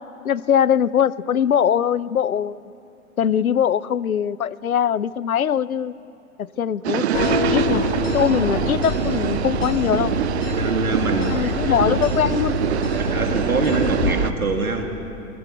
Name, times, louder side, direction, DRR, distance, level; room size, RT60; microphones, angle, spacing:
voice 1, 0.2-2.6 3.2-6.0 6.4-7.1 7.5-7.9 8.1-10.1 11.2-12.5, left 9 dB, 75° left, 20 dB, 0.7 m, -21 dB
sound 1, 6.8-14.3, right 11 dB, 50° right, 0.6 m, -25 dB
sound 2, 7.1-14.1, left 4 dB, 60° left, 4.1 m, -26 dB
voice 2, 10.5-11.8 13.0-14.8, right 3 dB, 80° right, 4 dB, 2.7 m, -25 dB
23.0 x 21.0 x 8.1 m, 2.8 s
figure-of-eight pair, 110°, 43 cm